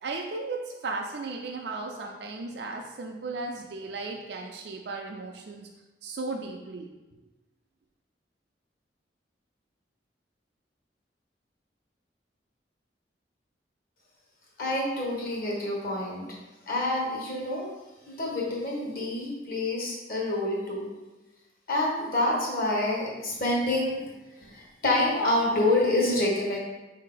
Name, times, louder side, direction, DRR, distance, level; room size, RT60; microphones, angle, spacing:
voice 1, 0.0-5.7 6.0-6.9, right 3 dB, 70° right, 1 dB, 0.4 m, -35 dB
voice 2, 14.6-16.3 16.7-17.7 18.1-20.9 21.7-24.1 24.4-26.6, left 1 dB, 50° left, -3 dB, 1.2 m, -27 dB
4.8 x 2.7 x 3.8 m, 1.1 s
head